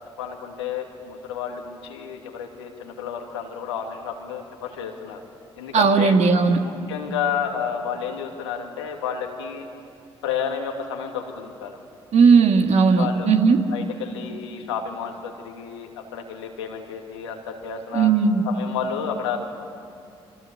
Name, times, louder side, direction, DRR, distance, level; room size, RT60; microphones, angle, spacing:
voice 1, 0.2-5.2 5.6-6.2 6.6-9.7 10.2-11.8 13.0-13.3 13.7-18.1 18.4-19.4, left 7 dB, 90° left, 2 dB, 2.6 m, -31 dB
voice 2, 5.7-6.6 12.1-13.6 17.9-18.4, right 5 dB, 55° right, 4 dB, 2.6 m, -17 dB
29.0 x 24.5 x 8.3 m, 2.4 s
hypercardioid pair, 45°, 14 cm